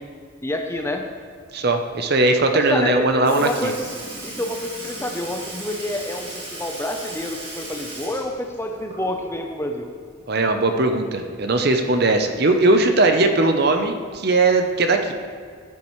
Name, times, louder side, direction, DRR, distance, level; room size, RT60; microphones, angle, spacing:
voice 1, 0.4-1.1 2.5-3.8 4.2-9.9, left 1 dB, 10° left, 4 dB, 0.6 m, -28 dB
voice 2, 1.5-3.7 10.3-15.1, right 2 dB, 50° right, 6 dB, 0.7 m, -19 dB
Sink (filling or washing) / Liquid, 3.2-9.3 9.7-9.8 11.3-11.4 12.4-12.5 13.3-13.5 14.3-14.4, right 1 dB, 25° right, 1.9 m, -36 dB
11.5 x 8.9 x 3.1 m, 2.1 s
head